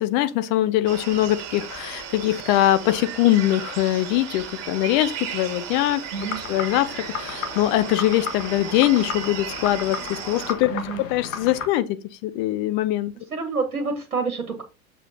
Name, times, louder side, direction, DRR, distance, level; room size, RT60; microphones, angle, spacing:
voice 1, 0.0-6.0 6.5-10.7 11.1-13.1, left 14 dB, 40° left, 0.9 m, -22 dB
sound 1, 0.9-10.5, right 8 dB, 35° right, 2.8 m, -35 dB
voice 2, 6.1-6.4 10.7-11.0 13.3-14.6, right 4 dB, 80° right, 1.6 m, -28 dB
sound 2, 6.2-11.7, left 6 dB, 60° left, 1.7 m, -34 dB
7.5 x 6.9 x 2.9 m
figure-of-eight pair, 90°, 42 cm